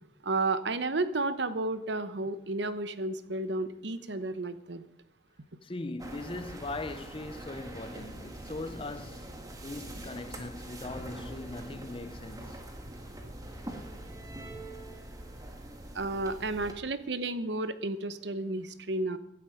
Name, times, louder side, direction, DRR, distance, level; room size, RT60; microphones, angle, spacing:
voice 1, 0.2-4.8 15.9-19.2, right 2 dB, 65° right, 1.0 m, -32 dB
voice 2, 5.6-12.6, left 2 dB, 30° left, 0.7 m, -40 dB
sound 1, 6.0-16.7, right 1 dB, 20° right, 1.8 m, -43 dB
16.0 x 11.5 x 5.1 m
head